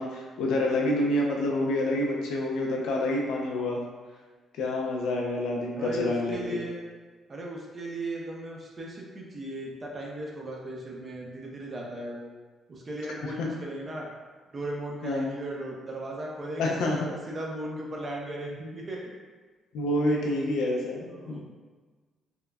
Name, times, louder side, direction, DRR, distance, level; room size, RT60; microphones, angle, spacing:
voice 1, 0.0-3.8 4.6-6.4 13.4-13.5 15.0-15.3 16.6-17.1 19.7-21.4, left 1 dB, 85° left, -1 dB, 0.5 m, -27 dB
voice 2, 5.8-6.8 7.3-12.3 12.7-14.1 14.5-19.0 20.1-20.3 21.1-21.4, right 1 dB, 35° right, -2 dB, 0.6 m, -37 dB
3.6 x 2.0 x 2.2 m, 1.4 s
cardioid pair, 90°, 0 cm